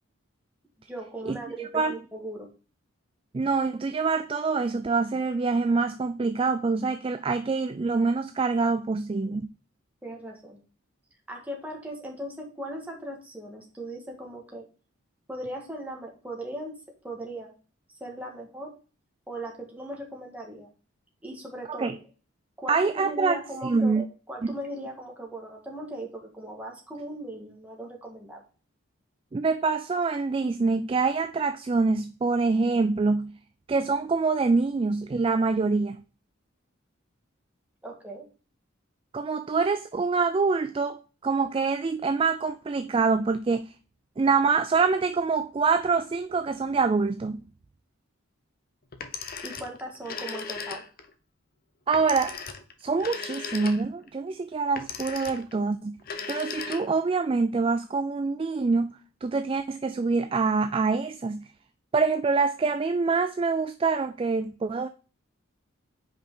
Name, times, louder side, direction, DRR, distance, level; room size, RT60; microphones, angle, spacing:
voice 1, 0.8-2.5 10.0-10.6 11.3-14.7 15.3-17.5 18.0-18.7 19.3-20.7 21.2-22.0 22.6-28.4 37.8-38.2 49.4-50.8, right 1 dB, 5° right, 1.7 m, -38 dB
voice 2, 3.3-9.5 21.7-21.9 22.7-24.0 24.4-24.5 29.3-33.4 33.7-36.0 39.1-43.7 44.2-47.4 51.9-52.4 52.8-56.0 56.3-61.5 61.9-64.9, right 4 dB, 25° right, 0.3 m, -25 dB
Telephone, 48.9-51.1 51.9-54.1 54.8-55.6 56.0-57.1, left 5 dB, 45° left, 0.8 m, -37 dB
5.4 x 5.0 x 4.6 m
head